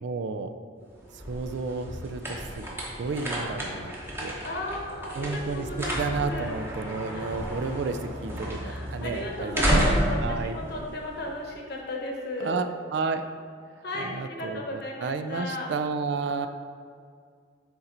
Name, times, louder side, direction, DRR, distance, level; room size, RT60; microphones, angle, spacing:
voice 1, 0.0-0.5 1.1-2.6 3.0-3.9 4.2-4.3 5.2-5.7 5.9-10.6 12.4-13.2 13.9-16.5, right 4 dB, 60° right, 8 dB, 0.4 m, -32 dB
sound 1, 0.9-11.6, equal, 10° right, 0.9 m, -31 dB
voice 2, 4.4-6.6 7.1-7.3 8.5-12.7 13.8-15.7 16.4-16.5, left 1 dB, 55° left, -1 dB, 1.1 m, -35 dB
6.9 x 4.3 x 3.9 m, 2.2 s
head